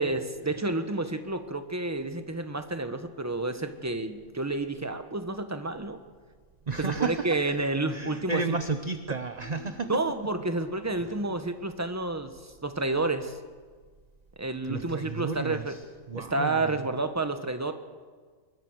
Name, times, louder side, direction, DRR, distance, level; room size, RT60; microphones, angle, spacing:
voice 1, 0.0-6.0 6.8-8.6 9.9-13.4 14.4-15.8 16.1-17.7, right 2 dB, 10° right, 8 dB, 1.3 m, -30 dB
voice 2, 6.7-7.4 7.9-9.9 11.0-11.1 14.7-16.8, right 4 dB, 35° right, 9 dB, 0.9 m, -32 dB
Guitar, 9.4-13.0, equal, 70° left, 6.8 m, -54 dB
24.0 x 22.0 x 6.6 m, 1.5 s
omnidirectional pair, 1.5 m